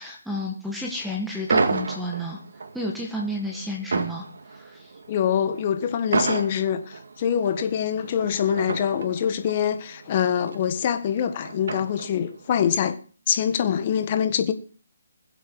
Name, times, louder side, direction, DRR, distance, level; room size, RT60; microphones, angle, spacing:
voice 1, 0.0-2.4 2.7-4.3 4.5-4.9, equal, ahead, 1.6 m, -31 dB
sound 1, 1.5-12.4, right 3 dB, 70° right, 1.9 m, -31 dB
voice 2, 5.1-13.0 13.3-14.5, left 8 dB, 35° left, 1.4 m, -24 dB
21.0 x 7.9 x 4.7 m
hypercardioid pair, 160°, 0 cm